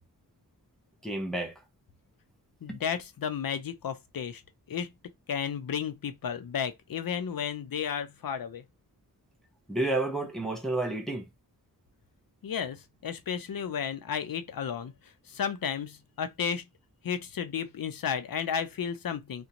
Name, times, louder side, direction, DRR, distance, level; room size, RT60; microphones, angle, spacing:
voice 1, 1.0-1.5 2.7-2.8 9.7-11.2, right 2 dB, ahead, 0.7 m, -30 dB
voice 2, 2.6-4.4 4.7-4.9 5.3-8.6 12.4-14.9 15.3-16.6 17.0-19.5, left 7 dB, 65° left, 0.5 m, -33 dB
2.5 x 2.2 x 2.9 m
wide cardioid pair, 90°, 37 cm